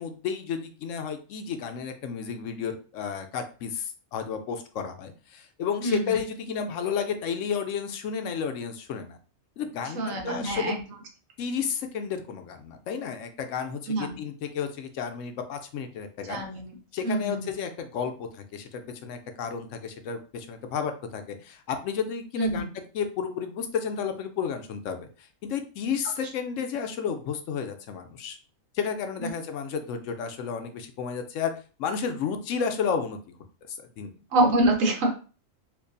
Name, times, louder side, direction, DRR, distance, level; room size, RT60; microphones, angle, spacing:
voice 1, 0.0-9.2 9.6-10.7 11.4-16.4 16.9-22.7 22.9-28.4 28.7-31.5 31.8-33.4 33.7-34.1, left 6 dB, 75° left, 7 dB, 0.9 m, -32 dB
voice 2, 5.8-6.2 9.9-10.8 13.9-14.2 16.3-16.8 17.0-17.5 22.4-22.6 29.2-29.3 34.3-35.1, right 2 dB, 80° right, 2 dB, 1.3 m, -25 dB
4.4 x 2.4 x 2.6 m, 0.36 s
omnidirectional pair, 1.4 m